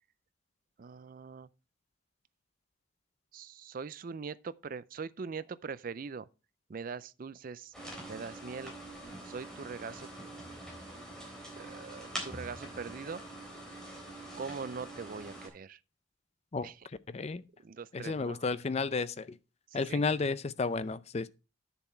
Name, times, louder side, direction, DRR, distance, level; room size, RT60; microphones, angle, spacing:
voice 1, 0.8-1.5 3.3-6.3 6.7-7.7 8.1-8.7 9.2-10.1 11.5-13.2 14.3-15.8 16.6-16.9 17.1-17.3 17.6-18.5 19.7-20.0, right 5 dB, 45° right, 0.4 m, -42 dB
sound 1, 7.7-15.5, right 1 dB, 5° left, 3.6 m, -45 dB
voice 2, 17.1-17.4 17.9-19.3 19.7-21.3, left 4 dB, 35° left, 0.4 m, -32 dB
10.0 x 7.0 x 4.4 m
head